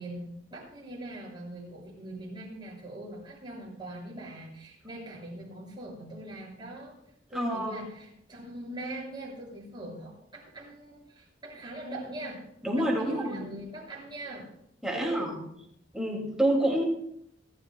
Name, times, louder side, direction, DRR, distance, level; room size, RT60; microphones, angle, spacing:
voice 1, 0.0-6.9 7.3-12.5 12.7-14.5 14.9-15.3, right 1 dB, 25° right, -4 dB, 6.9 m, -41 dB
voice 2, 7.3-7.8 12.6-13.5 14.8-15.4 15.9-16.8, right 1 dB, 5° right, -3 dB, 2.6 m, -28 dB
28.0 x 11.5 x 2.3 m, 0.72 s
head